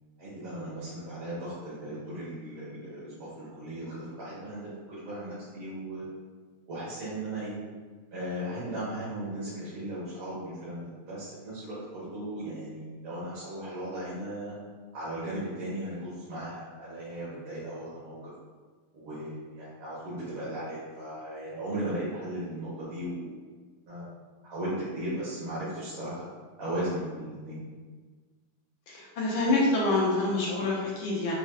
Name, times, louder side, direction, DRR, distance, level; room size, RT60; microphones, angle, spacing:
voice 1, 0.2-6.1 6.7-7.6 8.1-14.5 14.9-18.2 18.9-23.4 23.9-24.1 24.4-26.2 26.6-27.6, right 1 dB, 65° right, -11 dB, 2.0 m, -36 dB
voice 2, 28.9-31.3, left 2 dB, 75° left, -4 dB, 1.4 m, -26 dB
6.0 x 2.6 x 2.4 m, 1.4 s
omnidirectional pair, 2.4 m